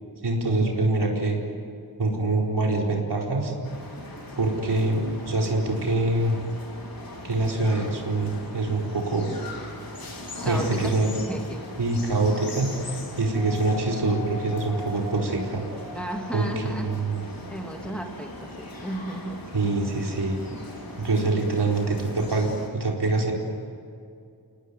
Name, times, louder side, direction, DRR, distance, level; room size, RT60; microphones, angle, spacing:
voice 1, 0.2-1.4 2.0-3.5 4.4-6.4 7.2-9.3 10.4-11.1 11.8-15.6 16.3-17.3 19.5-20.4 21.0-23.3, right 2 dB, 85° right, 0 dB, 4.5 m, -25 dB
sound 1, 3.6-22.7, left 1 dB, 60° left, 4.2 m, -40 dB
voice 2, 10.4-10.9 11.3-11.6 15.9-17.0 17.3-19.4 20.5-20.7, right 1 dB, 5° left, 2 dB, 2.7 m, -35 dB
sound 2, 13.3-16.5 17.9-18.0, left 3 dB, 85° left, 5.8 m, -40 dB
29.5 x 18.5 x 9.4 m, 2.4 s
wide cardioid pair, 100°, 39 cm